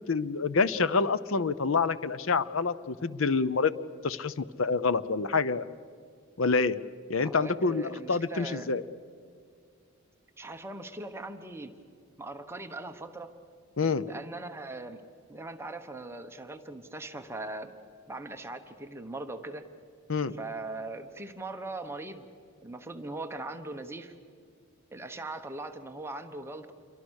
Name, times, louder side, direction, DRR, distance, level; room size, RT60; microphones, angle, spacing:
voice 1, 0.1-3.8 4.0-5.7 6.4-6.8 7.1-8.8 13.8-14.1 20.1-20.4, left 4 dB, 65° left, 16 dB, 0.7 m, -27 dB
voice 2, 7.2-8.7 10.4-11.7 12.2-13.3 14.1-15.0 15.3-17.7 18.1-19.6 20.3-22.3 22.6-24.1 24.9-26.7, right 2 dB, 10° right, 6 dB, 1.1 m, -40 dB
28.0 x 23.5 x 6.5 m, 2.3 s
head